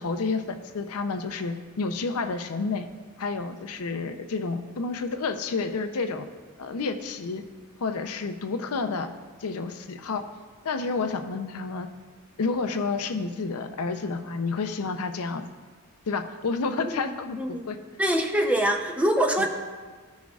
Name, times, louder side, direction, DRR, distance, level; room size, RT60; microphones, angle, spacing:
voice 1, 0.0-2.9 3.2-6.3 6.6-7.4 7.8-9.1 9.4-10.2 10.6-11.9 12.4-15.4 16.1-17.4 17.7-17.8 19.4-19.5, left 4 dB, 80° left, 7 dB, 0.6 m, -30 dB
voice 2, 17.4-17.7 18.0-19.5, right 1 dB, 5° right, 3 dB, 0.6 m, -24 dB
14.5 x 6.2 x 2.4 m, 1.5 s
head